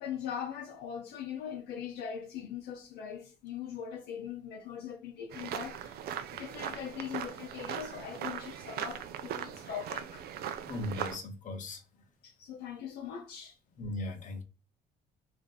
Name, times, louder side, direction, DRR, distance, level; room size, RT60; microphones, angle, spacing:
voice 1, 0.0-10.3 12.2-13.6, left 8 dB, 75° left, 0.6 m, -41 dB
sound 1, 5.3-11.2, right 9 dB, 65° right, 0.5 m, -39 dB
voice 2, 10.7-11.8 13.8-14.4, left 1 dB, 50° left, 0.9 m, -37 dB
3.4 x 2.6 x 2.2 m
cardioid pair, 110°, 17 cm